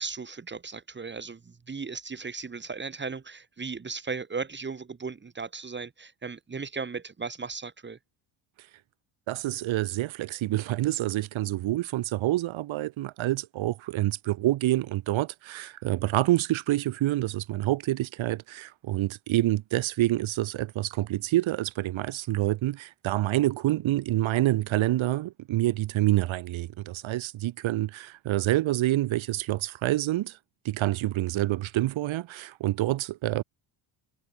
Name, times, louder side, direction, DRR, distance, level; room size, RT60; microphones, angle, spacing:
voice 1, 0.0-8.0, right 4 dB, 20° right, 3.3 m, -36 dB
voice 2, 9.3-30.4 30.6-33.4, right 15 dB, 70° right, 2.3 m, -27 dB
cardioid pair, 155°, 49 cm